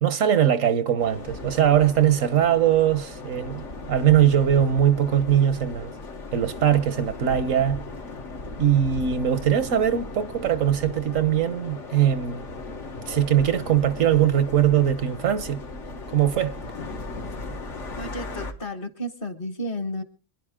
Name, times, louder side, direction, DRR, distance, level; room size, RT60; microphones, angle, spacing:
voice 1, 0.0-5.9 6.3-7.8 8.6-12.4 13.1-15.6 16.1-16.6, right 10 dB, 85° right, 1.4 m, -21 dB
sound 1, 1.0-18.5, left 3 dB, 70° left, 1.8 m, -37 dB
voice 2, 18.0-20.0, equal, 45° left, 1.5 m, -32 dB
26.0 x 10.5 x 3.7 m
omnidirectional pair, 1.3 m